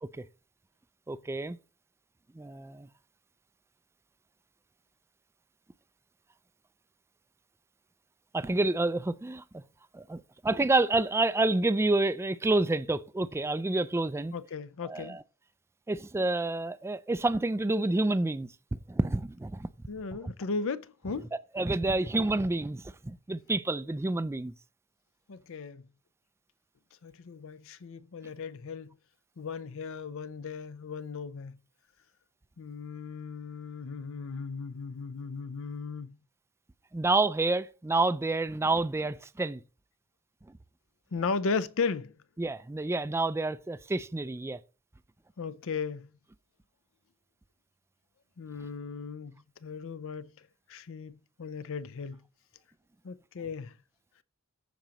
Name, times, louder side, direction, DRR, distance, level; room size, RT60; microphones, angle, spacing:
voice 1, 1.1-1.6 2.4-2.9 8.3-9.6 9.9-14.3 14.8-15.2 15.9-18.5 18.9-19.7 20.2-20.3 21.5-24.5 36.9-39.6 42.4-44.6, right 2 dB, 10° right, 0.3 m, -28 dB
voice 2, 14.3-15.2 19.9-21.3 25.3-25.8 27.0-29.0 29.4-31.6 32.6-36.2 41.1-42.1 45.4-46.1 48.4-50.3 50.7-52.2 53.0-53.7, left 4 dB, 65° left, 0.6 m, -36 dB
14.5 x 5.0 x 3.0 m
head